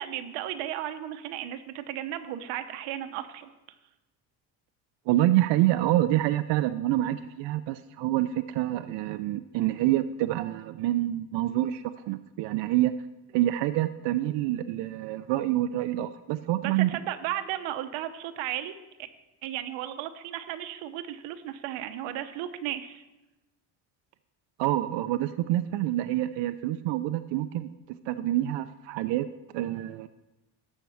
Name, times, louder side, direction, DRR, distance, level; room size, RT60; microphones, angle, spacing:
voice 1, 0.0-3.5 16.6-18.8 19.4-23.0, right 12 dB, 90° right, 9 dB, 0.9 m, -34 dB
voice 2, 5.1-12.9 13.3-16.9 24.6-27.7 28.1-29.3 29.5-30.1, right 14 dB, 70° right, 9 dB, 0.5 m, -27 dB
12.0 x 4.5 x 7.1 m, 1.0 s
cardioid pair, 125°, 46 cm